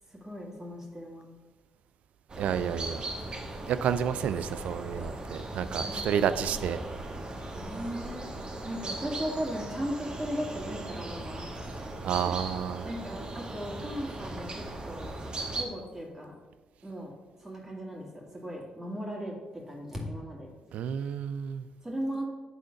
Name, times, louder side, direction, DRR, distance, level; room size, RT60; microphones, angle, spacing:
voice 1, 0.1-1.3 5.8-6.2 6.5-6.6 7.5-8.3 8.6-11.8 12.3-12.4 12.8-16.3 16.8-17.1 17.4-20.5 21.8-22.2, equal, 20° right, -2 dB, 2.3 m, -37 dB
sound 1, 2.3-15.6, right 2 dB, 40° right, 1.4 m, -38 dB
voice 2, 2.4-3.0 3.7-6.8 12.0-12.9 20.7-21.7, right 8 dB, 70° right, 12 dB, 0.4 m, -30 dB
8.3 x 3.7 x 5.3 m, 1.2 s
supercardioid pair, 55°, 2 cm